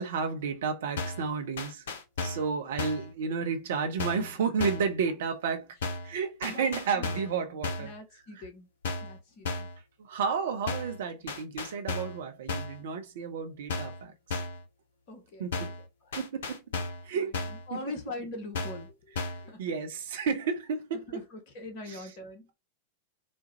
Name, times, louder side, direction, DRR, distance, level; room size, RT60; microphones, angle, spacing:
voice 1, 0.0-1.8 2.2-5.7 6.0-7.9 10.0-14.4 15.4-15.7 16.2-16.6 17.0-17.4 17.7-17.8 19.6-21.2 21.9-22.0, right 5 dB, 60° right, 0.8 m, -32 dB
sound 1, 1.0-1.3 1.6-2.5 2.8-3.1 4.0-4.3 4.6-4.9 5.8-6.1 6.4-7.4 7.6-8.0 8.8-9.2 9.5-9.8 10.7-11.0 11.3-12.2 12.5-12.8 13.7-14.0 14.3-14.6 15.5-15.8 16.1-17.1 17.3-17.7 18.5-18.9 19.2-19.5, left 3 dB, 60° left, 0.7 m, -34 dB
voice 2, 6.5-7.2 7.8-8.7 9.0-9.7 15.1-15.7 16.0-16.1 17.1-17.2 17.5-19.6 21.1-22.5, left 2 dB, 45° left, 1.1 m, -42 dB
4.2 x 2.2 x 2.9 m
figure-of-eight pair, 90°, 0 cm